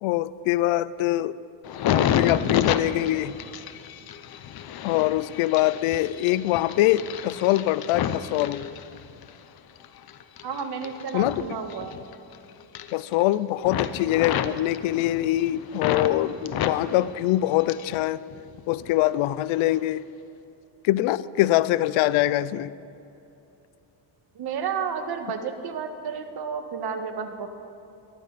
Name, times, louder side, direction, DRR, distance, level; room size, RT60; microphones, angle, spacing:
voice 1, 0.0-1.4 1.8-3.4 4.8-8.6 11.1-11.4 12.9-18.2 18.7-20.0 20.8-22.7, left 15 dB, 85° left, 18 dB, 0.7 m, -23 dB
sound 1, 1.6-9.3 9.8-12.4 12.6-13.3 13.6-16.1 16.5-18.0 18.3-19.0 19.6-19.8, left 9 dB, 50° left, 0.9 m, -30 dB
voice 2, 10.4-12.1 24.4-27.5, right 6 dB, 55° right, 6 dB, 1.8 m, -31 dB
22.0 x 15.0 x 4.2 m, 2.9 s
cardioid pair, 125°, 47 cm